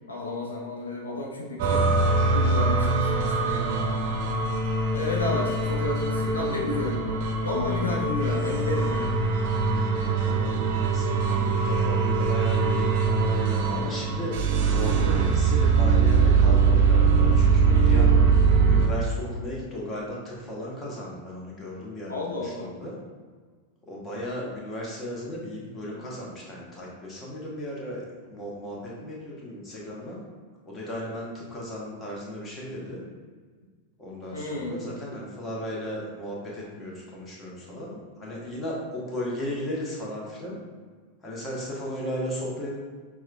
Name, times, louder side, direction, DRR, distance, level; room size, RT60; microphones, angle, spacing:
voice 1, 0.1-1.8 2.2-3.8 4.9-9.2 17.7-18.2 22.1-22.7 34.3-34.8, left 2 dB, 75° left, -2 dB, 0.5 m, -32 dB
sound 1, 1.6-18.9, right 4 dB, 50° right, 0.4 m, -22 dB
voice 2, 10.2-14.3 14.7-18.1 18.7-23.0 23.9-30.2 30.7-33.0 34.0-40.6 41.2-42.7, equal, 20° left, -4 dB, 1.1 m, -35 dB
5.9 x 2.3 x 2.3 m, 1.5 s
figure-of-eight pair, 90°, 0 cm